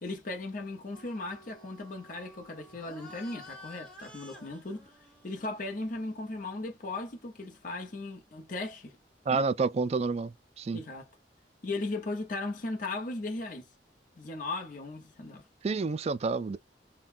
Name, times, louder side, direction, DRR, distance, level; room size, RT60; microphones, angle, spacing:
voice 1, 0.0-4.9 5.2-9.0 9.3-9.4 10.7-11.1 11.6-13.7 14.2-15.4, left 2 dB, 50° left, 0.9 m, -37 dB
sound 1, 0.9-6.8, left 1 dB, 5° left, 1.3 m, -52 dB
voice 2, 9.3-10.8 15.6-16.6, right 4 dB, 40° right, 0.3 m, -29 dB
3.8 x 2.2 x 2.6 m
head